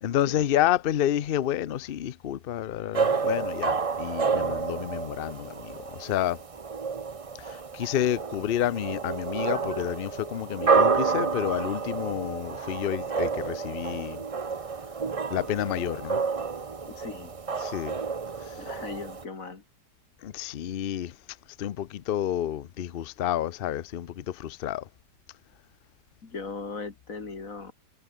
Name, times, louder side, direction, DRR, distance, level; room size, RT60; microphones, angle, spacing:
voice 1, 0.0-6.4 7.4-14.2 15.3-16.2 17.6-18.0 20.2-21.1 21.6-24.8, left 11 dB, 70° left, 0.5 m, -29 dB
sound 1, 2.9-19.2, right 5 dB, 40° right, 0.4 m, -29 dB
voice 2, 16.9-17.3 18.6-19.6 26.2-27.7, left 4 dB, 50° left, 2.8 m, -38 dB
omnidirectional pair, 1.9 m